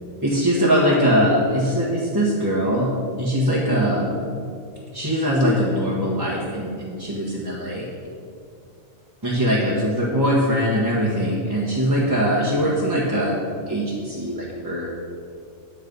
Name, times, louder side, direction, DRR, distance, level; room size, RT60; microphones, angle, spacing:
voice 1, 0.2-2.9 3.2-4.1 4.9-7.8 9.2-14.9, equal, 15° right, -6 dB, 1.5 m, -21 dB
9.7 x 8.3 x 5.4 m, 2.4 s
omnidirectional pair, 1.4 m